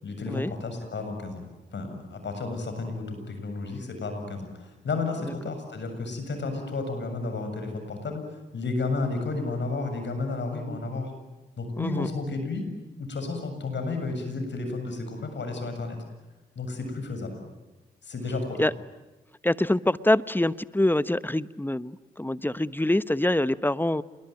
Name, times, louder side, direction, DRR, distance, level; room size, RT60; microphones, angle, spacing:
voice 1, 0.0-1.4 1.7-11.1 11.6-12.6 13.0-16.0 16.6-17.4 18.0-18.7, left 3 dB, 65° left, 6 dB, 7.4 m, -32 dB
voice 2, 11.8-12.1 18.6-18.7 19.4-24.0, left 1 dB, 10° left, 15 dB, 1.0 m, -25 dB
28.0 x 22.0 x 9.3 m, 1.2 s
supercardioid pair, 40°, 20 cm